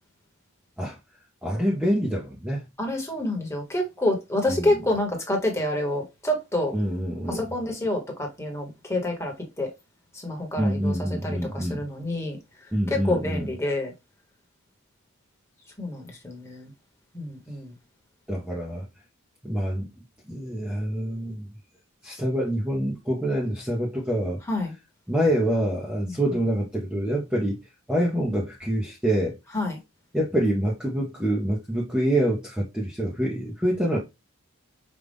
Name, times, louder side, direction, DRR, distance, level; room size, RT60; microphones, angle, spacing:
voice 1, 1.4-2.7 4.5-4.8 6.7-7.5 10.6-11.9 12.7-13.5 18.3-18.8 19.4-19.9 20.3-21.4 22.0-24.4 25.1-27.6 27.9-29.4 30.1-34.0, right 1 dB, 5° right, 0.7 m, -26 dB
voice 2, 2.8-6.7 7.3-9.7 10.1-10.9 11.2-12.4 12.9-13.9 15.8-16.7 17.1-17.7 24.5-24.7 26.0-26.1 29.5-29.8, left 1 dB, 10° left, 1.2 m, -28 dB
5.2 x 2.4 x 3.4 m
head